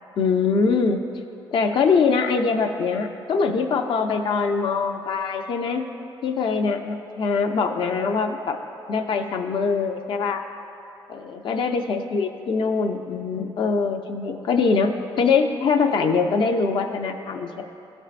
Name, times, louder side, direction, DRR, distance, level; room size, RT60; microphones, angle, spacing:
voice 1, 0.2-1.0 1.5-5.9 6.2-8.6 8.9-10.4 11.1-14.9 15.2-17.6, left 5 dB, 60° left, 5 dB, 0.5 m, -23 dB
13.0 x 4.5 x 2.5 m, 2.8 s
cardioid pair, 110°, 9 cm